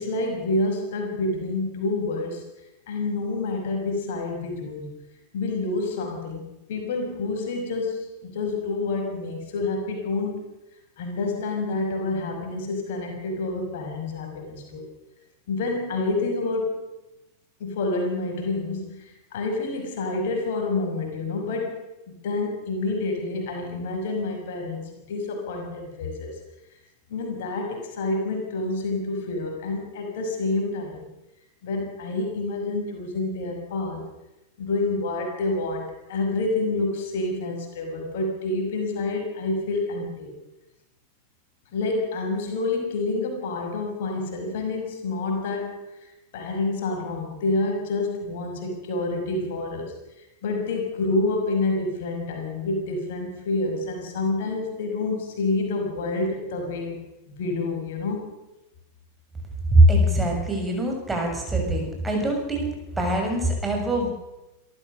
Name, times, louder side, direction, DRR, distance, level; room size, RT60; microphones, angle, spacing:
voice 1, 0.0-2.4 2.9-5.0 5.3-6.4 6.7-10.4 11.0-14.9 15.5-16.7 17.6-21.8 22.2-24.8 25.1-26.3 27.1-31.1 31.6-34.0 34.6-40.3 41.7-45.8 46.3-49.9 50.4-57.0 57.3-58.3, left 2 dB, 55° left, 3 dB, 5.7 m, -28 dB
voice 2, 59.7-64.1, right 1 dB, 10° right, 1 dB, 6.7 m, -22 dB
27.5 x 14.0 x 6.7 m, 0.95 s
figure-of-eight pair, 90°, 0 cm